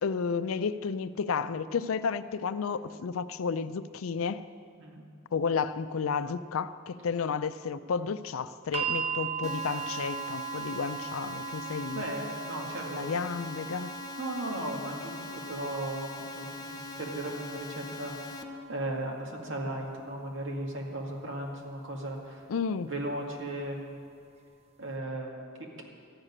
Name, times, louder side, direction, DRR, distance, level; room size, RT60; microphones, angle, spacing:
voice 1, 0.0-4.4 5.3-12.0 13.0-13.9 22.5-22.9, left 5 dB, 90° left, 13 dB, 0.4 m, -32 dB
sound 1, 8.7-20.8 21.9-22.0, right 8 dB, 30° right, 0.9 m, -40 dB
sound 2, 9.4-18.4, left 3 dB, 20° left, 0.7 m, -42 dB
voice 2, 11.9-13.1 14.2-22.4 22.8-24.0 24.8-25.5, right 1 dB, 65° right, -1 dB, 2.1 m, -36 dB
14.0 x 6.6 x 9.9 m, 2.2 s
head